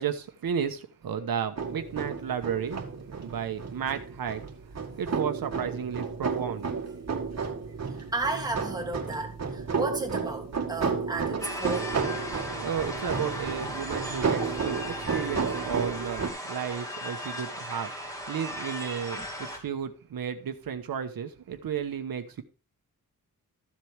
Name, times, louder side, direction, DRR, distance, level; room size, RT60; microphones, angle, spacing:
voice 1, 0.0-2.8 3.1-4.5 5.0-6.7 12.6-17.9 18.3-22.4, right 7 dB, 80° right, 1.1 m, -33 dB
sound 1, 1.6-16.3, right 5 dB, 50° right, 2.1 m, -32 dB
voice 2, 7.9-12.0 19.2-19.3, right 2 dB, 10° right, 2.7 m, -33 dB
sound 2, 11.4-19.6, equal, 10° left, 2.6 m, -37 dB
14.0 x 7.6 x 3.4 m
wide cardioid pair, 130°, 35 cm